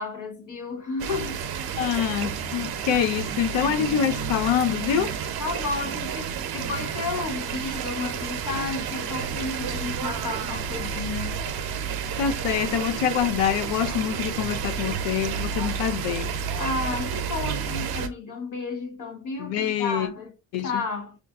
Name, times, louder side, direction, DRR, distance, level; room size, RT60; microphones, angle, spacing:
voice 1, 0.0-1.4 5.4-11.4 16.6-21.2, left 4 dB, 45° left, 0.9 m, -32 dB
sound 1, 1.0-18.1, right 7 dB, 55° right, 0.6 m, -31 dB
voice 2, 1.8-5.1 12.2-16.3 19.4-20.1 20.5-20.7, left 9 dB, 85° left, 0.7 m, -25 dB
5.3 x 2.5 x 2.3 m
cardioid pair, 140°, 43 cm